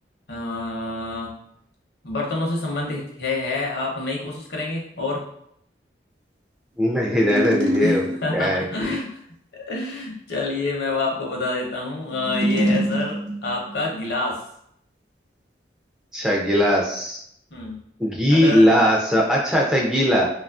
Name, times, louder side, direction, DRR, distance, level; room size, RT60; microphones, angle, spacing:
voice 1, 0.3-1.3 2.0-5.2 7.8-9.1 9.5-14.4 17.5-17.8 18.3-18.7, left 2 dB, 65° left, -1 dB, 0.7 m, -27 dB
voice 2, 6.8-8.0 8.3-9.0 16.1-17.2 18.0-20.3, equal, 5° right, -2 dB, 0.3 m, -19 dB
sound 1, 7.1-8.5 12.1-13.9, equal, 85° right, 0.7 m, -25 dB
2.7 x 2.4 x 2.3 m, 0.71 s
head